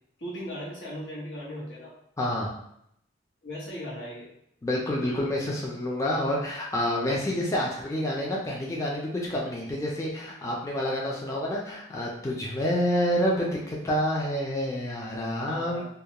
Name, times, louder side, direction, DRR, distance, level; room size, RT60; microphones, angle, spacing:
voice 1, 0.2-1.9 3.4-4.3 15.5-15.8, equal, 90° left, -6 dB, 1.0 m, -37 dB
voice 2, 2.2-2.5 4.6-15.8, left 1 dB, 15° left, -3 dB, 0.4 m, -28 dB
2.3 x 2.1 x 2.8 m, 0.73 s
head